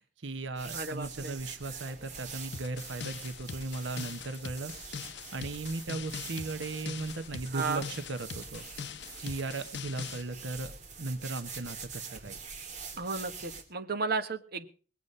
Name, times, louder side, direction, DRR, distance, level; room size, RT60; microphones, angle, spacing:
voice 1, 0.0-8.6 9.2-12.4, right 2 dB, 90° right, 8 dB, 1.1 m, -37 dB
sound 1, 0.6-13.6, right 5 dB, 45° right, 2.9 m, -45 dB
voice 2, 0.7-1.4 7.5-7.9 13.0-14.7, right 4 dB, 60° right, 6 dB, 1.4 m, -34 dB
sound 2, 2.5-10.2, left 6 dB, 65° left, 0.7 m, -42 dB
20.5 x 8.4 x 5.4 m, 0.40 s
head